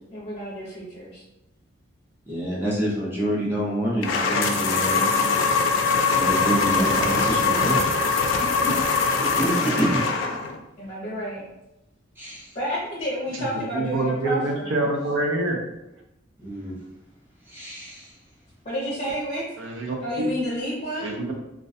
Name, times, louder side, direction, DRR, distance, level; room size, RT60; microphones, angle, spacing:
voice 1, 0.1-1.2 8.4-8.8 10.8-11.4 12.5-14.9 18.6-19.5 20.0-21.1, equal, 30° left, -6 dB, 0.6 m, -30 dB
voice 2, 2.3-5.2 6.1-7.9 9.2-10.0 12.2-12.5 16.4-16.8 17.5-18.1, equal, 10° right, -6 dB, 0.5 m, -27 dB
sound 1, 4.0-10.6, left 4 dB, 70° left, 0.3 m, -22 dB
voice 3, 13.3-15.6 19.6-20.3 21.0-21.3, right 2 dB, 75° right, 1 dB, 0.5 m, -26 dB
2.4 x 2.1 x 2.6 m, 0.91 s
head